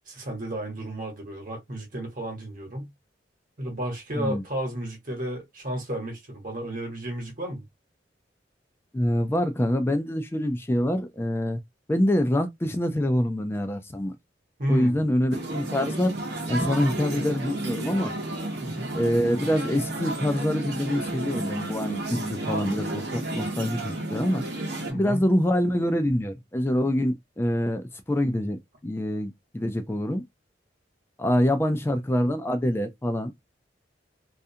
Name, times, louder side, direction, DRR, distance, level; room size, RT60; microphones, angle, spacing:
voice 1, 0.1-2.9 3.6-7.6 14.6-15.0 18.6-18.9 24.9-25.2, right 1 dB, 50° right, 1.1 m, -32 dB
voice 2, 8.9-11.6 11.9-14.2 14.7-16.1 16.5-18.1 18.9-24.4 24.9-30.2 31.2-33.3, left 1 dB, 15° left, 0.4 m, -25 dB
sound 1, 15.3-24.9, right 1 dB, 65° right, 0.8 m, -32 dB
2.4 x 2.2 x 2.7 m
head